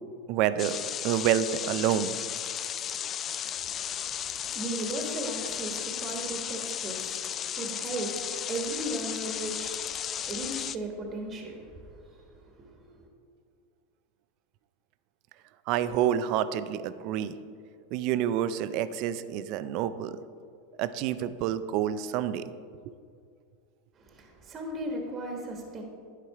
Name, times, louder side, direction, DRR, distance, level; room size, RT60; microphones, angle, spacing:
voice 1, 0.3-0.8 1.0-2.2 15.7-17.4 17.9-20.2 20.8-22.5, right 10 dB, 55° right, 13 dB, 0.4 m, -28 dB
sound 1, 0.6-10.8, left 9 dB, 35° left, 0.3 m, -34 dB
voice 2, 3.5-13.1 24.0-25.8, right 1 dB, 30° right, 2 dB, 1.4 m, -37 dB
11.0 x 4.8 x 4.7 m, 2.3 s
hypercardioid pair, 110°, 0 cm